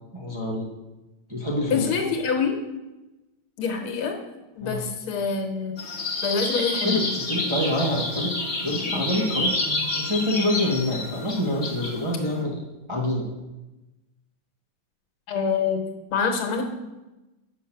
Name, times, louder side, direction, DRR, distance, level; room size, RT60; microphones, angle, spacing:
voice 1, 0.1-0.7 1.3-1.8 4.6-4.8 6.8-8.3 8.6-12.6 12.9-13.3, left 1 dB, 20° right, -4 dB, 0.8 m, -26 dB
voice 2, 1.7-2.6 3.6-4.2 4.6-5.8 6.2-7.1 15.3-15.8 16.1-16.6, left 5 dB, 85° left, 4 dB, 2.0 m, -25 dB
sound 1, 5.8-12.4, left 2 dB, 35° left, 1.4 m, -29 dB
7.3 x 6.0 x 5.9 m, 1.0 s
omnidirectional pair, 2.3 m